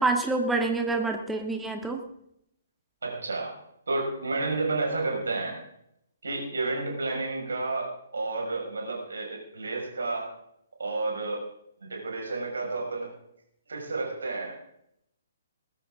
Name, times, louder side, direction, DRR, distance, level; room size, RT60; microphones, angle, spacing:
voice 1, 0.0-2.0, right 3 dB, 5° right, 4 dB, 1.7 m, -27 dB
voice 2, 3.0-3.5 3.9-5.6 6.2-10.4 10.8-11.5 11.8-13.1 13.7-14.6, right 3 dB, 65° right, 0 dB, 5.9 m, -31 dB
20.0 x 14.0 x 3.8 m, 0.76 s
figure-of-eight pair, 125°, 0 cm